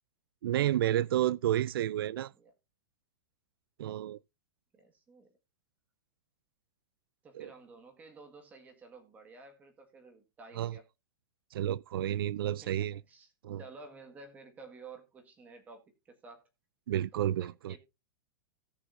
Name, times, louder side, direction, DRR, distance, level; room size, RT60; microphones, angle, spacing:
voice 1, 0.4-2.3 3.8-4.2 7.3-7.5 10.6-10.8 11.5-13.0 13.4-13.6 16.9-17.8, right 12 dB, 90° right, 0.4 m, -30 dB
voice 2, 4.7-5.4 7.2-10.8 12.6-13.3 13.6-16.5 17.4-17.8, right 3 dB, 15° right, 1.7 m, -52 dB
17.5 x 6.3 x 2.6 m
supercardioid pair, 170°, 12 cm